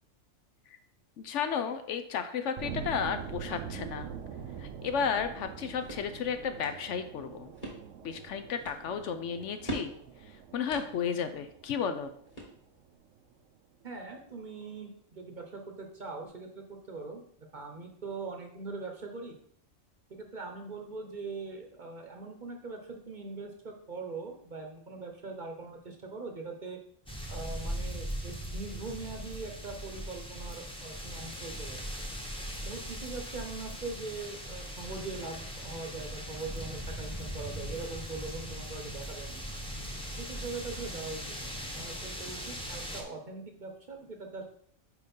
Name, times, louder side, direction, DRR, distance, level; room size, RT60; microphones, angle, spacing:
voice 1, 1.2-4.1 4.6-7.5 8.0-9.9 10.5-12.1, left 7 dB, 70° left, 9 dB, 0.9 m, -33 dB
sound 1, 2.6-13.3, right 7 dB, 80° right, 1.0 m, -44 dB
sound 2, 5.5-13.0, right 1 dB, 30° left, 1.7 m, -46 dB
voice 2, 13.8-19.4 20.1-26.8 27.3-31.8 32.6-39.4 40.2-44.4, right 3 dB, 40° right, 3 dB, 0.9 m, -42 dB
sound 3, 27.0-43.0, equal, 5° left, 0.8 m, -39 dB
5.0 x 4.5 x 5.3 m, 0.64 s
omnidirectional pair, 1.3 m